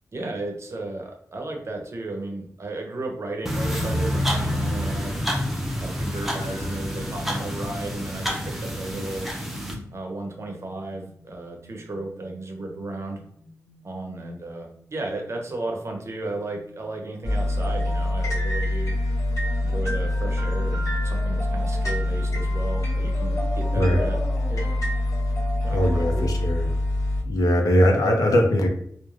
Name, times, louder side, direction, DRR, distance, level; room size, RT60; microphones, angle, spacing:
voice 1, 0.1-5.2 5.8-9.3 9.9-13.2 13.8-18.9 19.6-24.2 24.5-24.7 25.6-26.3, right 2 dB, 50° right, 2 dB, 0.6 m, -34 dB
sound 1, 3.5-9.7, equal, 5° right, 0.5 m, -28 dB
sound 2, 6.1-17.9, left 1 dB, 45° left, 0.5 m, -50 dB
sound 3, 17.2-27.2, left 1 dB, 65° left, 1.0 m, -25 dB
voice 2, 23.7-24.1 25.7-26.7 27.2-28.7, equal, 85° left, 2 dB, 0.6 m, -20 dB
3.1 x 2.1 x 2.4 m, 0.68 s
wide cardioid pair, 90°, 6 cm